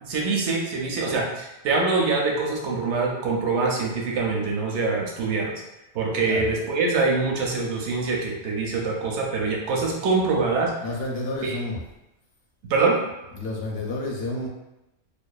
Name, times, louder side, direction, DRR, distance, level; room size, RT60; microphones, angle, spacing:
voice 1, 0.0-5.5 5.9-10.7 11.4-11.6 12.7-13.0, right 3 dB, 80° right, -1 dB, 0.9 m, -24 dB
voice 2, 10.8-11.8 13.3-14.5, left 2 dB, 65° left, -2 dB, 0.7 m, -30 dB
2.6 x 2.1 x 2.3 m, 0.93 s
omnidirectional pair, 1.2 m